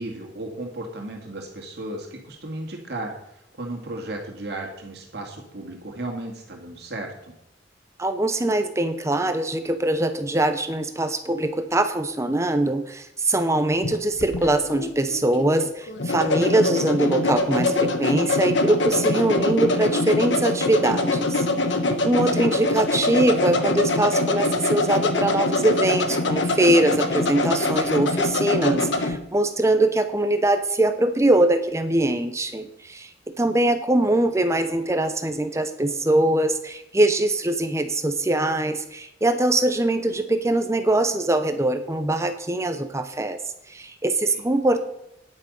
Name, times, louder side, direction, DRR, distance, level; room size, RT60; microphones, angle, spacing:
voice 1, 0.0-7.3 21.9-22.1 44.3-44.4, right 2 dB, 65° right, 1 dB, 2.0 m, -35 dB
voice 2, 8.0-21.5 22.0-33.1 33.4-43.4 43.7-44.8, right 1 dB, 15° right, 9 dB, 0.7 m, -22 dB
sound 1, 13.8-29.2, left 2 dB, 90° left, 1.3 m, -24 dB
9.9 x 8.9 x 5.4 m, 0.79 s
head